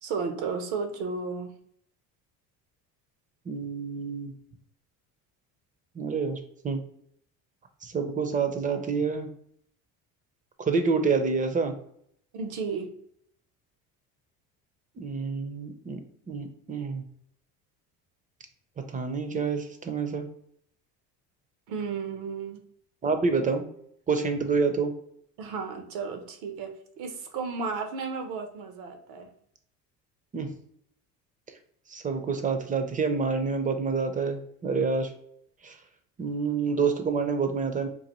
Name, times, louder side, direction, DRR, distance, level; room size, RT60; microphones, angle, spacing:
voice 1, 0.0-1.5 12.3-12.9 21.7-22.6 25.4-29.3, right 5 dB, 75° right, 6 dB, 0.8 m, -33 dB
voice 2, 3.5-4.3 6.0-6.4 6.6-6.8 7.8-9.3 10.6-11.7 15.0-17.0 18.9-20.3 23.0-23.6 24.1-24.9 30.3-30.5 31.9-35.1 35.6-35.8 36.2-37.9, right 5 dB, 20° right, 8 dB, 0.5 m, -27 dB
3.9 x 2.6 x 2.9 m, 0.68 s
cardioid pair, 105°, 38 cm